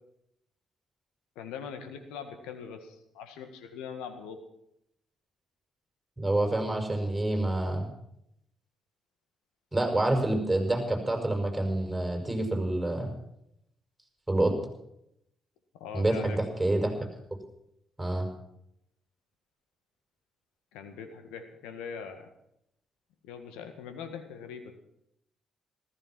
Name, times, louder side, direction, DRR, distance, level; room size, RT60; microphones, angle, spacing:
voice 1, 1.4-4.4 15.7-16.4 20.7-22.3 23.2-24.8, left 6 dB, 75° left, 7 dB, 1.7 m, -42 dB
voice 2, 6.2-7.9 9.7-13.1 14.3-14.5 15.9-16.9 18.0-18.3, right 1 dB, 10° right, 3 dB, 6.0 m, -27 dB
15.0 x 14.5 x 6.1 m, 0.78 s
hypercardioid pair, 45°, 0 cm